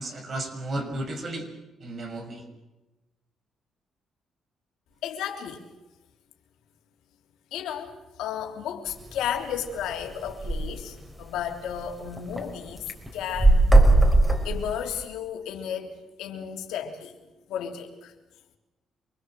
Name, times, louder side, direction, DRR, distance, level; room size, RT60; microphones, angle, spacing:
voice 1, 0.0-1.5 1.8-2.4, right 1 dB, 45° right, 5 dB, 6.6 m, -33 dB
voice 2, 5.0-5.6 7.5-12.9 13.1-13.8 14.4-17.1 17.5-18.1, left 9 dB, 90° left, 3 dB, 3.4 m, -33 dB
sound 1, 8.9-9.1 9.6-9.7 9.9-10.0 10.2-10.6 11.2-11.3 11.7-12.4 12.8-15.0, right 2 dB, 10° right, 4.8 m, -18 dB
27.0 x 21.5 x 7.8 m, 1.1 s
cardioid pair, 90°, 0 cm